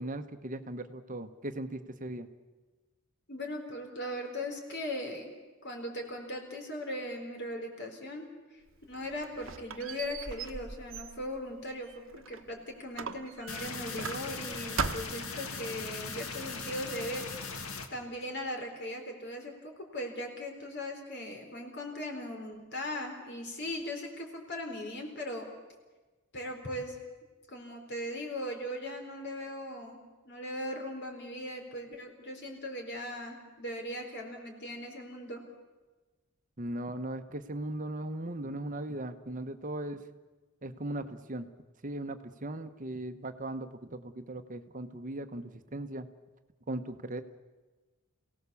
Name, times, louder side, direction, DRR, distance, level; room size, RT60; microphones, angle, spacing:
voice 1, 0.0-2.3 36.6-40.0 40.6-41.5 41.8-46.1 46.7-47.2, right 1 dB, 40° right, 8 dB, 1.0 m, -38 dB
voice 2, 3.3-5.3 5.6-8.6 8.9-17.5 17.9-25.5 26.3-27.0 27.5-30.0 30.3-35.4, left 1 dB, 55° left, 3 dB, 4.3 m, -39 dB
Squeak, 8.7-12.5 13.0-14.5 14.8-15.3, right 5 dB, 65° right, 1.1 m, -39 dB
sound 1, 13.5-17.9, left 4 dB, 85° left, 1.9 m, -39 dB
28.0 x 17.5 x 7.1 m, 1.2 s
head